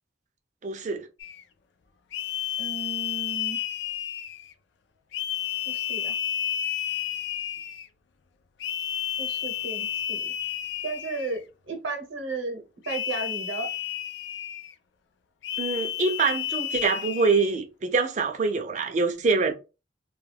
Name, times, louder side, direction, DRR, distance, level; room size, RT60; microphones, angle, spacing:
voice 1, 0.6-1.1 15.6-19.5, right 4 dB, 40° right, 0.4 m, -25 dB
sound 1, 1.2-1.4 2.1-4.5 5.1-7.9 8.6-11.4 12.8-14.7 15.4-17.5, left 11 dB, 65° left, 0.3 m, -31 dB
voice 2, 2.6-3.6 5.6-6.1 9.2-10.3 10.8-13.7, right 3 dB, 85° right, 0.8 m, -34 dB
2.3 x 2.2 x 3.2 m
head